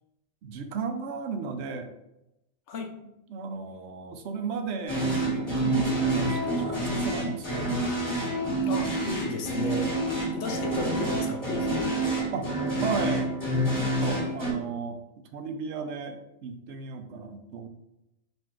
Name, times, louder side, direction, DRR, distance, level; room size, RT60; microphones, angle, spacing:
voice 1, 0.4-1.9 3.3-7.8 12.3-12.5 12.8-15.0 15.3-17.7, right 5 dB, 75° right, 6 dB, 0.9 m, -35 dB
sound 1, 4.9-14.5, right 1 dB, 15° left, 1.5 m, -28 dB
voice 2, 8.6-9.9 10.3-11.9, left 3 dB, 80° left, 5 dB, 1.0 m, -34 dB
4.3 x 2.6 x 4.4 m, 0.88 s
omnidirectional pair, 1.2 m